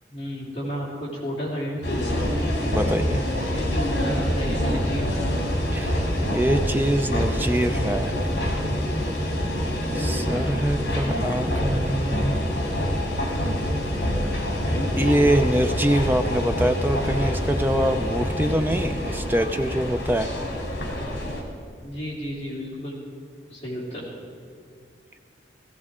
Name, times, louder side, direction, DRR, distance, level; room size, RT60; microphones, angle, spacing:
voice 1, 0.1-2.4 3.5-5.3 21.8-22.9 23.5-24.1, equal, 35° left, -6 dB, 3.2 m, -32 dB
sound 1, 1.8-21.4, equal, 65° left, 2.8 m, -26 dB
voice 2, 2.7-3.2 5.7-8.2 9.9-12.4 15.0-20.3, right 1 dB, 10° right, 7 dB, 0.5 m, -24 dB
16.0 x 16.0 x 3.7 m, 2.3 s
head